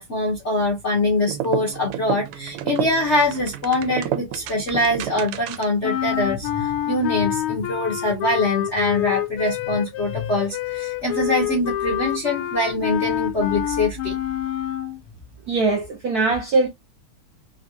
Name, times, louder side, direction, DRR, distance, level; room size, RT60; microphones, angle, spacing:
voice 1, 0.0-14.2, left 2 dB, 55° left, 0.8 m, -23 dB
sound 1, 1.2-5.9, right 11 dB, 85° right, 1.5 m, -30 dB
sound 2, 5.8-15.0, left 12 dB, 90° left, 1.6 m, -27 dB
voice 2, 15.5-16.7, right 3 dB, 70° right, 0.9 m, -21 dB
4.0 x 2.3 x 2.6 m
omnidirectional pair, 2.4 m